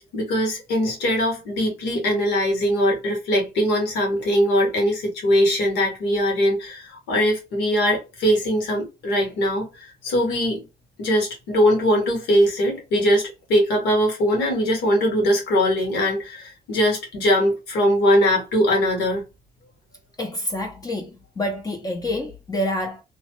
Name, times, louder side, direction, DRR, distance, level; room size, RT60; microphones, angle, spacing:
voice 1, 0.1-10.6 11.0-19.2, equal, 85° left, 1.7 m, -21 dB
voice 2, 20.2-23.0, left 1 dB, 20° left, 0.6 m, -27 dB
3.1 x 2.2 x 3.0 m
cardioid pair, 110°, 17 cm